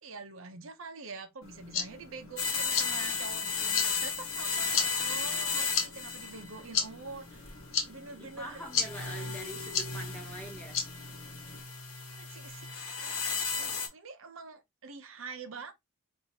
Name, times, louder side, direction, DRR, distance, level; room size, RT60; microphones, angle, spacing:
voice 1, 0.0-7.6 7.9-8.6 9.0-9.5 12.1-12.6 13.0-15.7, right 4 dB, 65° right, 0.7 m, -46 dB
sound 1, 1.4-11.6, left 6 dB, 60° left, 0.9 m, -37 dB
sound 2, 2.4-6.7 7.3-7.8 8.7-13.9, left 5 dB, 85° left, 1.0 m, -34 dB
voice 2, 8.0-10.8, right 1 dB, 5° left, 0.9 m, -44 dB
4.7 x 2.5 x 2.7 m
head